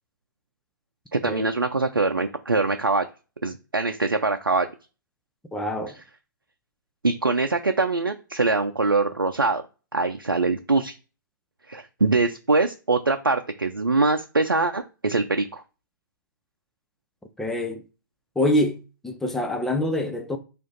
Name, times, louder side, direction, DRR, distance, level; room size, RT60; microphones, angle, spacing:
voice 1, 1.1-3.1 3.4-4.7 7.0-9.6 9.9-11.0 11.7-15.6, right 3 dB, 80° right, 0.6 m, -23 dB
voice 2, 5.5-6.0 17.4-17.8 18.4-20.4, left 1 dB, 5° left, 0.5 m, -25 dB
4.9 x 2.6 x 3.9 m
figure-of-eight pair, 125°, 11 cm